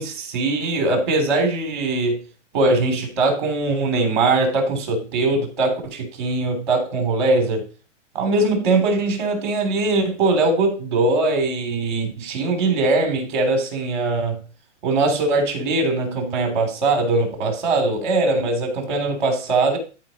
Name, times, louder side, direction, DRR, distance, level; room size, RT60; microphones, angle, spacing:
voice 1, 0.0-2.2 2.5-7.6 8.1-14.4 14.8-19.8, right 2 dB, 40° right, 3.4 m, -21 dB
13.5 x 5.0 x 4.2 m
hypercardioid pair, 175°, 37 cm